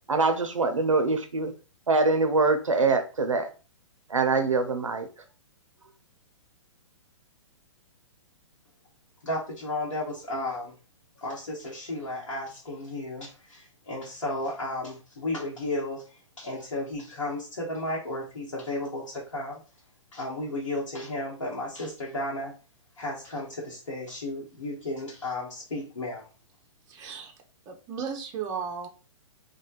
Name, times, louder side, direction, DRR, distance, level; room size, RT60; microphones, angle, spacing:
voice 1, 0.1-1.5 1.9-3.5 4.1-5.1, right 3 dB, 85° right, 7 dB, 0.4 m, -24 dB
voice 2, 9.2-10.7 11.2-19.6 20.1-22.5 23.0-26.2, left 1 dB, 70° left, -5 dB, 0.9 m, -33 dB
voice 3, 26.9-27.3 27.7-28.9, right 6 dB, 20° right, 2 dB, 0.5 m, -35 dB
3.1 x 2.1 x 2.4 m, 0.35 s
figure-of-eight pair, 115°, 16 cm